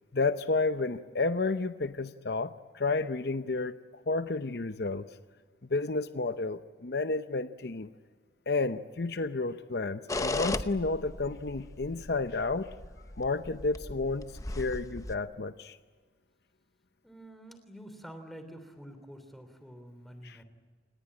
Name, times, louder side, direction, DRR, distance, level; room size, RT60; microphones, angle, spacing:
voice 1, 0.1-3.8 4.1-5.1 5.7-7.9 8.5-12.7 13.2-15.8 20.2-20.4, left 3 dB, 60° left, 11 dB, 0.7 m, -31 dB
sound 1, 10.1-15.2, left 2 dB, 20° left, 0.8 m, -36 dB
voice 2, 17.0-20.4, equal, ahead, 8 dB, 3.2 m, -48 dB
28.5 x 20.0 x 8.8 m, 1.5 s
head